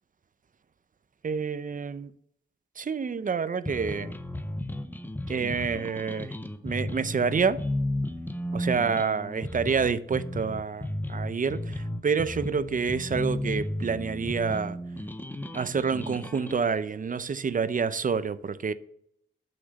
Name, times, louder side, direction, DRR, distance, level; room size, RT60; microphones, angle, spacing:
voice 1, 1.2-2.1 2.8-4.1 5.3-6.3 6.6-7.6 8.5-14.8 15.5-18.7, right 5 dB, 40° right, 0.5 m, -28 dB
sound 1, 3.7-16.6, left 1 dB, 10° left, 0.5 m, -34 dB
6.3 x 5.9 x 7.2 m
wide cardioid pair, 125°, 20 cm